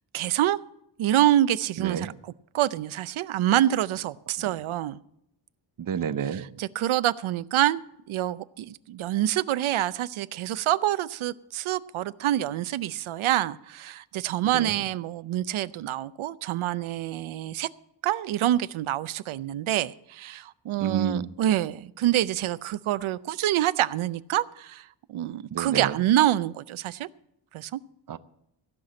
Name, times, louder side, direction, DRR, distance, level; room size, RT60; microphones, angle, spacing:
voice 1, 0.1-0.6 1.0-5.0 6.2-7.8 8.1-17.7 18.0-27.1 27.5-27.8, right 13 dB, 90° right, 0.6 m, -26 dB
voice 2, 1.8-2.1 5.8-6.4 14.5-14.7 20.8-21.3 25.5-25.9 28.1-28.2, right 8 dB, 45° right, 0.6 m, -29 dB
15.5 x 5.9 x 8.6 m
wide cardioid pair, 165°, 47 cm